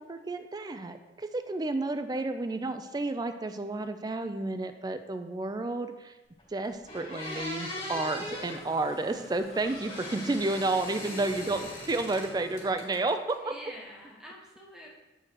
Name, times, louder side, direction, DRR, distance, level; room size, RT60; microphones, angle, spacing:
voice 1, 0.0-6.1 6.5-13.5, right 2 dB, 20° right, 8 dB, 0.3 m, -31 dB
sound 1, 6.4-6.5 6.9-8.6 9.5-12.3 12.6-13.3, left 1 dB, 35° left, 2.1 m, -40 dB
Engine starting, 7.6-12.7, left 1 dB, 15° left, 1.4 m, -51 dB
voice 2, 11.0-11.6 13.4-14.9, equal, 5° right, -4 dB, 1.1 m, -48 dB
7.8 x 4.6 x 2.9 m, 1.1 s
head